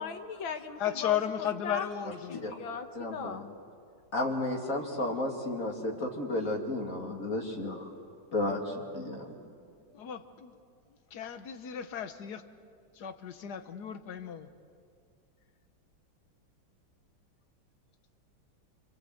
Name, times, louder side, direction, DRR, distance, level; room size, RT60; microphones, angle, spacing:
voice 1, 0.0-3.5, left 6 dB, 75° left, 8 dB, 2.0 m, -39 dB
voice 2, 0.8-2.4 9.9-10.5 11.1-12.4 13.0-14.5, left 10 dB, 60° left, 10 dB, 1.5 m, -34 dB
voice 3, 2.9-3.4 4.1-7.9 8.3-9.2, left 1 dB, 40° left, 1 dB, 2.9 m, -33 dB
29.5 x 23.0 x 7.8 m, 2.3 s
omnidirectional pair, 2.2 m